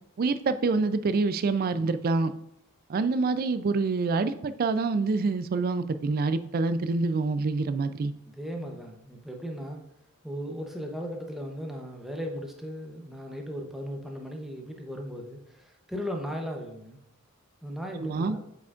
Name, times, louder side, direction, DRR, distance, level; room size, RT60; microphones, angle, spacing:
voice 1, 0.2-2.3 2.9-8.1 18.0-18.4, right 3 dB, 40° right, 13 dB, 0.3 m, -26 dB
voice 2, 8.3-9.8 10.2-17.0 17.6-18.4, equal, ahead, 1 dB, 0.7 m, -37 dB
7.9 x 4.9 x 2.4 m, 0.77 s
head